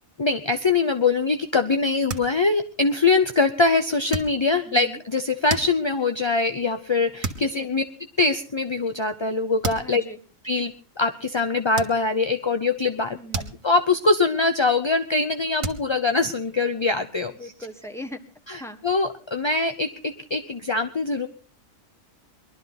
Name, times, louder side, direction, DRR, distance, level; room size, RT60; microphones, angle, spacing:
voice 1, 0.2-7.8 8.2-10.0 10.4-10.7 11.0-13.2 13.6-17.5 18.5-21.3, left 3 dB, 30° left, 7 dB, 0.5 m, -23 dB
sound 1, 2.1-2.7 3.1-3.4 4.0-4.8 5.2-6.1 6.7-6.9 7.2-7.6 8.0-8.1 9.1-9.2 9.6-10.0 10.6-10.8 11.8-12.4 12.8-14.1 14.4-14.6 15.0-15.1 15.6-16.9, right 4 dB, 75° right, 2.0 m, -34 dB
voice 2, 4.6-5.0 7.5-7.7 9.8-10.2 13.1-13.6 17.3-18.2 18.6-18.8, left 1 dB, ahead, 6 dB, 1.3 m, -39 dB
22.0 x 12.0 x 4.0 m, 0.38 s
omnidirectional pair, 1.4 m